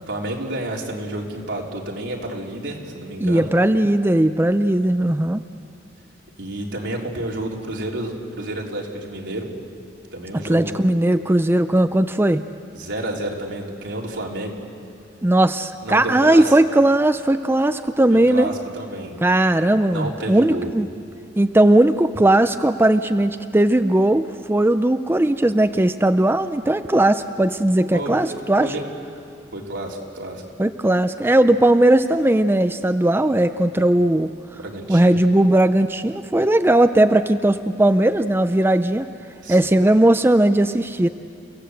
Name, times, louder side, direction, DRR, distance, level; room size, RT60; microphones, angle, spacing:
voice 1, 0.1-3.5 6.4-9.5 10.1-10.7 12.7-14.6 15.8-16.5 18.1-19.2 19.9-20.7 27.9-28.2 28.6-28.8 29.5-30.4 34.5-35.2 39.4-39.6, right 1 dB, 80° right, -2 dB, 3.5 m, -30 dB
voice 2, 3.2-5.4 10.5-12.4 15.2-18.5 19.2-20.9 21.4-28.7 30.6-34.3 34.9-39.1 39.5-41.1, right 1 dB, 10° right, 9 dB, 0.5 m, -18 dB
30.0 x 16.5 x 7.9 m, 2.5 s
head